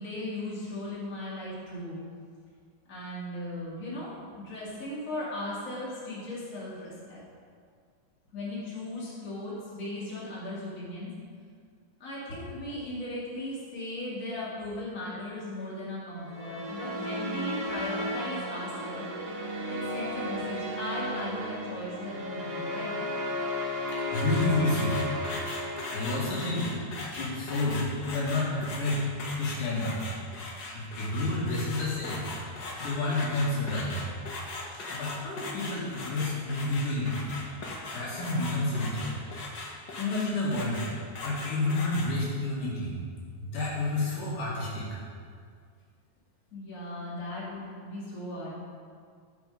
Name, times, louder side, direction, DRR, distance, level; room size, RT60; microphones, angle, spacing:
voice 1, 0.0-2.0 2.9-4.1 4.4-7.2 8.3-11.1 12.0-19.0 19.7-23.0 46.5-48.5, left 1 dB, 25° left, -8 dB, 3.2 m, -37 dB
sound 1, 16.2-26.6, left 1 dB, 45° right, 1.0 m, -34 dB
voice 2, 23.9-25.0 25.9-26.7 27.2-29.1 29.4-30.0 30.7-32.2 32.5-34.0 34.8-37.2 37.8-39.1 40.0-43.0 43.4-45.0, left 2 dB, 70° left, -6 dB, 3.7 m, -30 dB
sound 2, 24.1-42.1, left 2 dB, 55° left, 1.1 m, -39 dB
14.0 x 6.3 x 5.2 m, 2.1 s
omnidirectional pair, 3.8 m